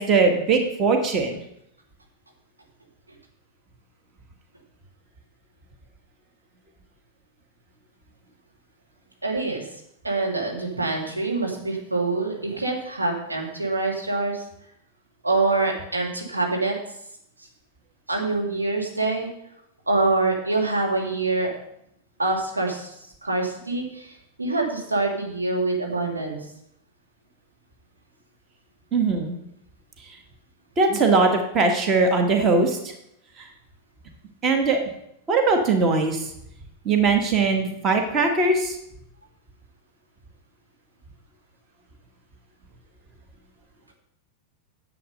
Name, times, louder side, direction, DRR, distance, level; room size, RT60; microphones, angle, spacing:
voice 1, 0.0-1.4 28.9-29.3 30.8-32.8 33.4-33.5 34.4-34.8 35.3-36.2 36.8-38.8, right 4 dB, 30° right, 4 dB, 1.6 m, -20 dB
voice 2, 9.2-9.6 10.0-14.4 15.2-16.8 18.1-19.3 19.9-21.5 22.2-22.9 23.2-24.1 24.4-26.4, right 3 dB, 80° right, 0 dB, 2.2 m, -25 dB
10.0 x 7.6 x 5.4 m, 0.78 s
figure-of-eight pair, 90°, 0 cm